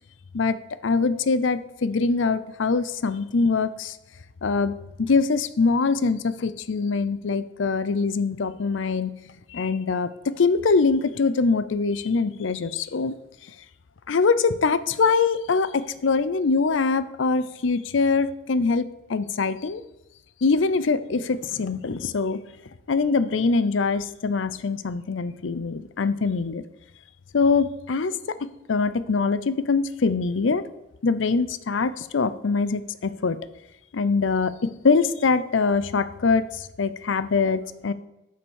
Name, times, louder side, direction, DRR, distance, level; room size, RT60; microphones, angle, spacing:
voice 1, 0.8-4.0 4.4-4.7 5.0-9.1 9.5-13.1 14.1-19.8 20.4-22.4 22.9-26.6 27.3-28.1 28.4-30.6 31.0-33.4 33.9-37.9, left 4 dB, 80° left, 14 dB, 0.5 m, -23 dB
8.8 x 5.7 x 6.3 m, 0.90 s
head